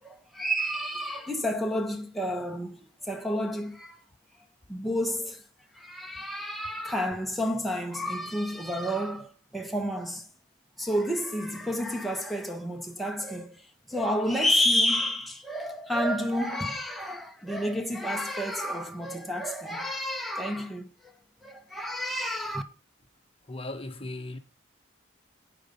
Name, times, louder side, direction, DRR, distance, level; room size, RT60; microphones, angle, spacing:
voice 1, 0.0-4.0 4.7-5.4 5.7-10.3 10.8-13.6 13.9-21.1 21.4-22.6, equal, ahead, 1.6 m, -30 dB
voice 2, 23.5-24.4, left 2 dB, 30° left, 1.3 m, -37 dB
9.6 x 9.3 x 5.5 m
head